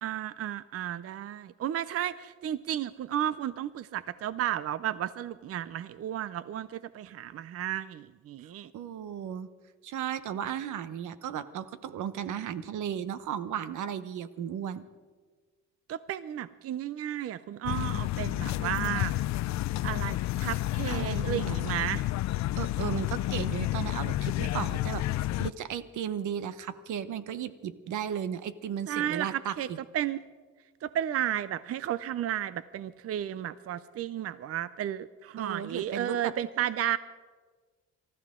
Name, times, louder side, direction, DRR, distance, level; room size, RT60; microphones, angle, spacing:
voice 1, 0.0-8.7 15.9-19.1 19.8-22.0 28.9-29.7 29.9-30.2 30.8-37.0, right 11 dB, 50° right, 16 dB, 0.5 m, -33 dB
voice 2, 8.7-9.5 9.8-14.8 20.9-21.6 22.6-29.8 35.4-36.3, right 9 dB, 75° right, 14 dB, 1.0 m, -35 dB
sound 1, 17.6-25.5, left 15 dB, 65° left, 0.5 m, -30 dB
27.0 x 14.0 x 3.7 m, 1.5 s
cardioid pair, 90°, 30 cm